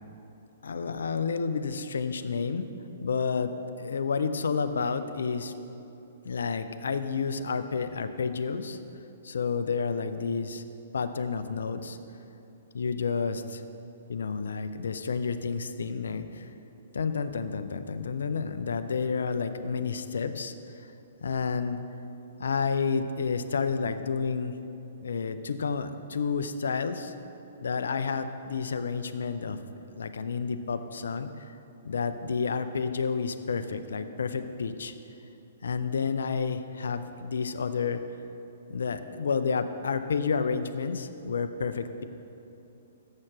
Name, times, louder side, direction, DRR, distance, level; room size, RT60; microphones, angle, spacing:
voice 1, 0.6-2.7 3.0-3.5 3.8-5.5 6.2-8.8 9.2-10.6 10.9-12.0 12.7-13.6 14.1-16.5 16.9-20.5 20.8-20.9 21.2-21.8 22.4-24.6 25.0-27.1 27.6-29.6 29.9-31.6 31.8-34.9 35.6-38.0 38.7-42.0, left 5 dB, 70° left, 10 dB, 0.5 m, -30 dB
7.4 x 6.4 x 6.0 m, 2.8 s
figure-of-eight pair, 120°, 0 cm